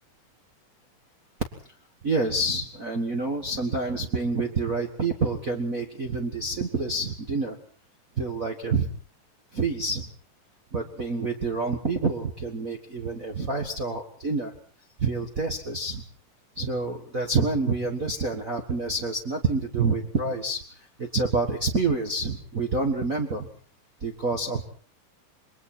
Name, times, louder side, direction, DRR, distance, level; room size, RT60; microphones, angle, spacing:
voice 1, 2.0-7.6 8.2-8.9 9.5-10.1 10.7-14.5 15.0-16.0 16.5-23.5 24.0-24.7, right 3 dB, 45° right, 2 dB, 1.1 m, -27 dB
27.5 x 22.0 x 4.4 m, 0.44 s
omnidirectional pair, 4.0 m